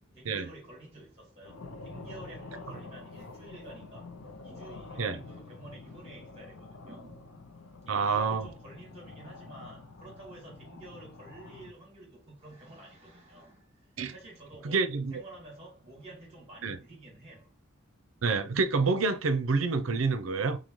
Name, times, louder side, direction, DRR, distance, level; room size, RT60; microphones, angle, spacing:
voice 1, 0.0-7.5 7.9-17.5, right 2 dB, 30° right, 2.3 m, -50 dB
sound 1, 1.4-11.7, left 3 dB, 85° left, 0.6 m, -47 dB
voice 2, 7.9-8.5 14.0-14.1 14.6-15.1 16.6-16.8 18.2-20.6, right 4 dB, 85° right, 0.6 m, -27 dB
4.0 x 3.9 x 3.1 m
head